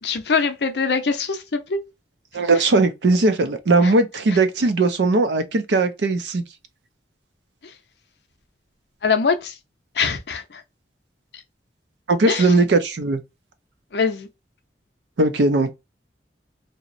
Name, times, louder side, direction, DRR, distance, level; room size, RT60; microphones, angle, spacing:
voice 1, 0.0-1.8 3.8-3.9 7.6-7.7 9.0-9.6 9.9-10.6 11.3-11.4 12.3-12.5 13.9-14.3, left 5 dB, 65° left, 0.5 m, -23 dB
voice 2, 2.3-6.4 12.1-13.2 15.2-15.7, right 3 dB, 75° right, 0.5 m, -19 dB
2.8 x 2.0 x 2.5 m
head